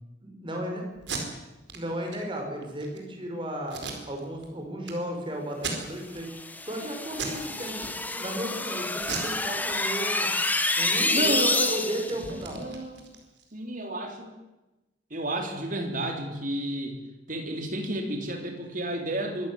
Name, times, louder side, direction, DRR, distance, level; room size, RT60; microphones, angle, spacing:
voice 1, 0.2-0.9 1.7-3.8 4.1-6.3 6.6-7.9 8.1-10.3 10.8-11.4 11.7-12.6, right 1 dB, 25° right, 2 dB, 5.6 m, -34 dB
Packing tape duct tape, 0.9-1.2 1.7-1.8 2.1-2.2 2.6-3.0 3.7-4.5 4.8-4.9 5.5-6.2 6.6-6.8 7.1-7.4 7.7-8.4 9.0-10.1 10.4-10.6 10.9-13.5, right 5 dB, 65° right, 4.5 m, -37 dB
sound 1, 6.2-12.2, left 2 dB, 10° left, 1.2 m, -28 dB
voice 2, 11.1-11.7 12.3-13.0 13.5-14.3 15.1-17.0 17.3-19.5, right 1 dB, 45° right, 3 dB, 3.9 m, -31 dB
24.0 x 13.5 x 9.5 m, 1.1 s
head